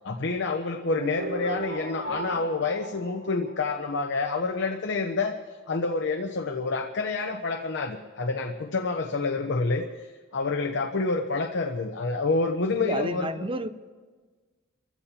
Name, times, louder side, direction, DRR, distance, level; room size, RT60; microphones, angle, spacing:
voice 1, 0.0-5.4 5.7-13.3, left 3 dB, 65° left, 3 dB, 0.9 m, -28 dB
sound 1, 1.0-4.0, right 2 dB, 85° right, 3.3 m, -37 dB
voice 2, 12.8-13.7, right 1 dB, 25° right, 11 dB, 0.6 m, -30 dB
29.5 x 15.0 x 2.9 m, 1.4 s
head